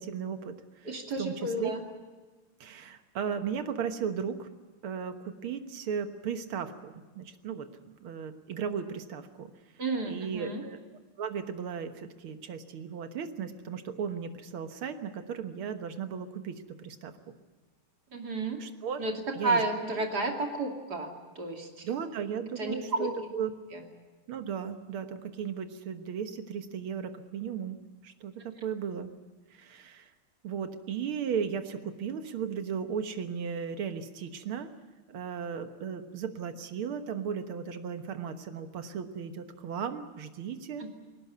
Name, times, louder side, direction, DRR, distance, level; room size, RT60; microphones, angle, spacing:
voice 1, 0.0-1.7 2.6-4.5 4.8-7.7 8.0-9.5 10.1-10.8 11.2-17.1 18.6-19.0 19.3-19.6 19.9-20.1 21.8-23.5 24.3-27.8 28.0-29.1 29.5-30.1 30.4-34.7 35.1-40.9, right 7 dB, 80° right, 8 dB, 2.2 m, -36 dB
voice 2, 0.8-1.8 9.8-10.6 18.1-18.6 19.0-19.1 19.4-21.7 22.6-23.1 23.7-23.8 40.8-40.9, right 2 dB, 50° right, 2 dB, 3.2 m, -31 dB
21.0 x 18.5 x 9.5 m, 1.3 s
omnidirectional pair, 2.3 m